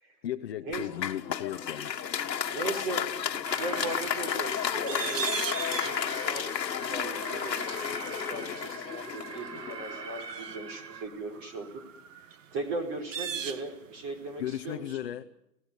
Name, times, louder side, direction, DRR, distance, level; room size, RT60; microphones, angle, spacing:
voice 1, 0.2-2.0 14.4-15.3, left 12 dB, 40° left, 6 dB, 1.0 m, -35 dB
Applause, 0.7-10.1, left 8 dB, 90° left, 1.6 m, -32 dB
sound 1, 1.5-14.5 14.7-14.8, right 8 dB, 50° right, 1.8 m, -40 dB
voice 2, 2.5-3.1 3.4-5.3 5.7-11.8 12.2-15.0, right 2 dB, 25° right, 4 dB, 4.5 m, -38 dB
Alarm, 3.4-11.0, right 5 dB, 80° right, 2.8 m, -43 dB
28.5 x 17.5 x 8.3 m, 0.85 s
hypercardioid pair, 160°, 48 cm